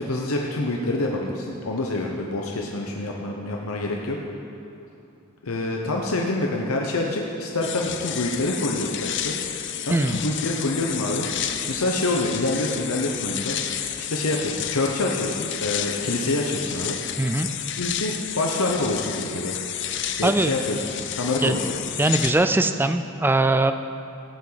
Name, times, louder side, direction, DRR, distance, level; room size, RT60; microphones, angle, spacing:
voice 1, 0.0-4.2 5.4-9.4 9.8-11.3 11.7-13.6 14.0-17.0 17.8-19.6 20.2-20.8 21.2-21.7, left 2 dB, 85° left, 0 dB, 1.0 m, -26 dB
sound 1, 7.6-22.3, left 9 dB, 55° left, 0.6 m, -31 dB
voice 2, 9.9-10.2 17.2-17.5 20.2-20.5 21.4-21.6 22.0-23.7, right 2 dB, 10° right, 9 dB, 0.3 m, -21 dB
16.0 x 8.7 x 4.0 m, 3.0 s
head